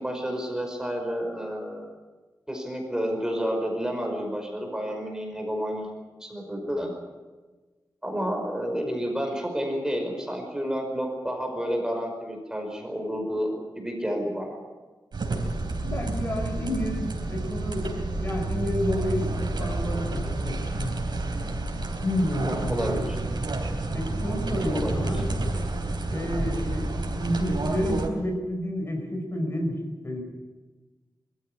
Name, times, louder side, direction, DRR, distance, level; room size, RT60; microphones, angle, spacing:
voice 1, 0.0-1.9 2.5-5.9 6.2-6.9 8.0-14.6 22.4-23.2 24.7-25.2, equal, 10° right, 2 dB, 5.2 m, -30 dB
sound 1, 15.1-28.1, right 2 dB, 75° right, 3.6 m, -29 dB
voice 2, 15.8-17.9 18.2-21.0 22.0-23.3 23.9-25.2 26.1-29.8 30.0-30.2, left 1 dB, 35° left, 2 dB, 5.0 m, -30 dB
23.0 x 14.0 x 9.9 m, 1.3 s
wide cardioid pair, 110°, 8 cm